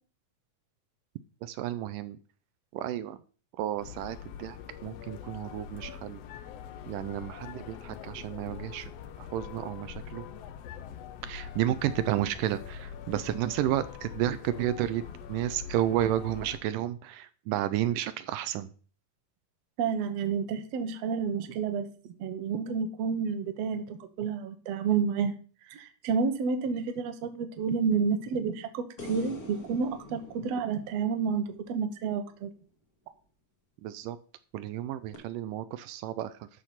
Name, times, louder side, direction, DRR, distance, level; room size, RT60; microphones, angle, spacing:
voice 1, 1.4-2.2 2.7-3.2 3.6-6.2 6.9-8.9 9.2-10.3 11.2-15.0 15.3-18.7 33.8-34.2 34.5-36.5, right 12 dB, 80° right, 13 dB, 2.2 m, -32 dB
sound 1, 3.8-16.6, left 8 dB, 85° left, 1.4 m, -43 dB
voice 2, 19.8-25.3 25.7-32.5, right 5 dB, 65° right, 9 dB, 1.9 m, -30 dB
sound 2, 29.0-32.3 35.1-35.2, left 1 dB, 30° left, 2.0 m, -46 dB
13.0 x 4.9 x 5.8 m, 0.40 s
omnidirectional pair, 3.8 m